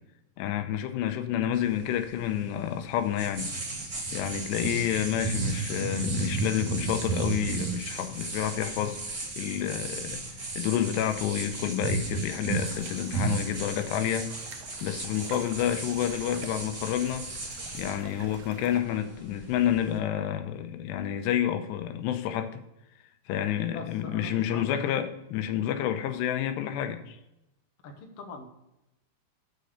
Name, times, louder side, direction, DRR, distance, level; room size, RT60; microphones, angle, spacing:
voice 1, 0.4-3.5 4.1-14.3 14.8-17.3 17.7-22.6 23.3-27.2, left 10 dB, 90° left, 8 dB, 2.9 m, -29 dB
sound 1, 1.5-20.0, right 4 dB, 60° right, 0.8 m, -35 dB
sound 2, 12.5-18.8, right 8 dB, 85° right, 1.8 m, -48 dB
voice 2, 23.3-25.1 27.8-28.4, left 3 dB, 60° left, 3 dB, 1.6 m, -43 dB
7.9 x 6.5 x 6.6 m, 0.90 s
omnidirectional pair, 4.9 m